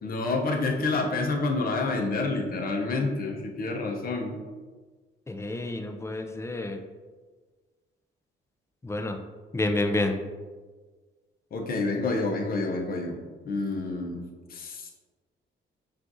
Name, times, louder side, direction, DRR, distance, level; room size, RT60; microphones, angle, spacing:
voice 1, 0.0-4.4 11.5-13.2 13.4-14.2 14.5-14.9, left 3 dB, 50° left, 2 dB, 0.7 m, -28 dB
voice 2, 5.3-6.8 8.8-9.2 9.5-10.2, left 2 dB, 15° left, 5 dB, 0.4 m, -29 dB
5.7 x 2.5 x 2.6 m, 1.4 s
cardioid pair, 90°, 20 cm